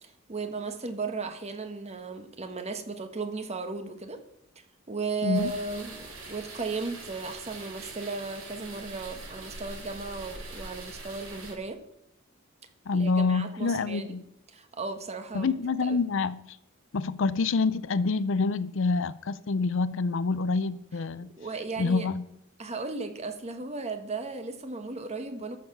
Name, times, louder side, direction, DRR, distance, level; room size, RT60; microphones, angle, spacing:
voice 1, 0.0-4.2 4.9-11.8 12.9-14.1 14.5-15.5 15.8-16.0 21.4-22.1 22.6-25.6, right 4 dB, 30° right, 1.3 m, -35 dB
sound 1, 5.3-11.5, right 3 dB, 70° right, 3.5 m, -43 dB
voice 2, 12.9-14.2 15.3-16.4 16.9-21.3 21.8-22.2, left 4 dB, 65° left, 0.5 m, -27 dB
13.0 x 6.7 x 5.8 m
head